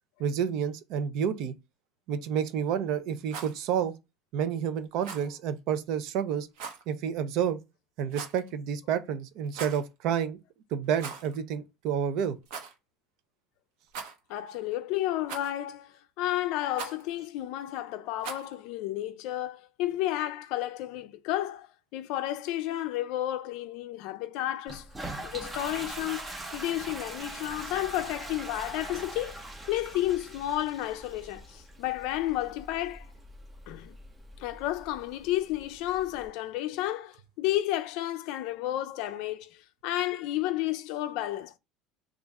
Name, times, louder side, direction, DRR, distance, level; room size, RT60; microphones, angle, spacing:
voice 1, 0.2-1.5 2.1-3.9 4.3-6.5 6.9-7.6 8.0-10.4 10.7-12.4, right 8 dB, 55° right, 0.5 m, -29 dB
Rattle, 3.2-3.6 5.0-5.3 6.5-6.8 8.1-8.5 9.4-9.8 10.9-11.4 11.6-11.7 12.4-12.7 13.9-14.4 15.3-15.7 16.7-17.0 18.2-18.5, right 6 dB, 75° right, 0.9 m, -40 dB
voice 2, 14.3-24.9 25.2-29.4 29.7-33.1 33.7-34.0 34.4-41.6, left 14 dB, 60° left, 0.4 m, -32 dB
Toilet flush, 24.7-36.3, right 1 dB, 10° right, 0.6 m, -42 dB
3.5 x 2.5 x 4.1 m
cardioid pair, 160°, 0 cm